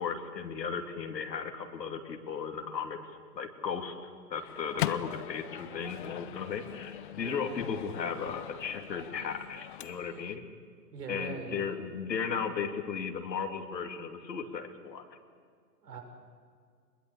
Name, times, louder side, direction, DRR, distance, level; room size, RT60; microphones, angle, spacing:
voice 1, 0.0-3.9 4.3-10.4 11.1-15.1, left 6 dB, 85° left, 5 dB, 3.0 m, -36 dB
Microwave oven, 4.3-10.4, left 14 dB, 35° left, 0.5 m, -40 dB
voice 2, 10.9-11.6 15.8-16.0, right 5 dB, 70° right, 3 dB, 6.1 m, -41 dB
24.0 x 21.5 x 8.3 m, 2.1 s
hypercardioid pair, 135°, 49 cm